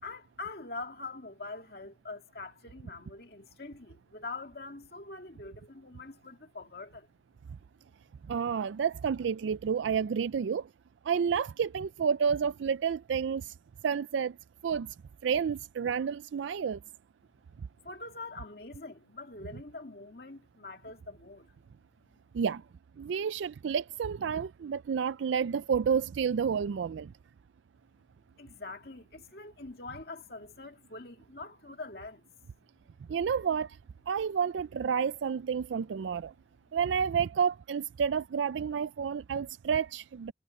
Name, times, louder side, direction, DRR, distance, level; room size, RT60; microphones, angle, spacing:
voice 1, 0.0-7.1 17.8-21.5 28.4-32.2, left 3 dB, 55° left, 2.3 m, -44 dB
voice 2, 8.2-10.7 11.0-13.5 13.8-14.4 14.6-15.0 15.2-16.8 17.6-17.7 22.3-22.6 23.0-27.1 33.1-33.8 34.1-36.3 36.7-40.3, right 7 dB, 90° right, 0.4 m, -30 dB
head